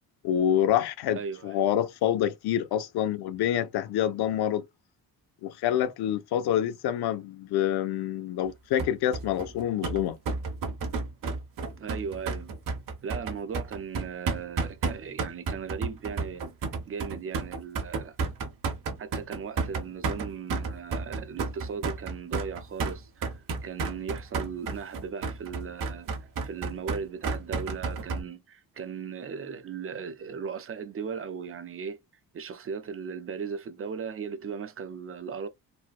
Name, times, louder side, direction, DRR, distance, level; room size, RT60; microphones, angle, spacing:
voice 1, 0.2-4.6 5.4-10.2, left 10 dB, 80° left, 0.6 m, -27 dB
voice 2, 1.1-1.6 11.8-12.5 13.0-16.4 16.9-18.2 19.0-26.1 26.4-32.0 32.3-35.5, right 6 dB, 35° right, 0.6 m, -37 dB
sound 1, 8.8-28.2, right 4 dB, 55° right, 1.2 m, -32 dB
4.0 x 2.1 x 2.4 m
cardioid pair, 120°, 38 cm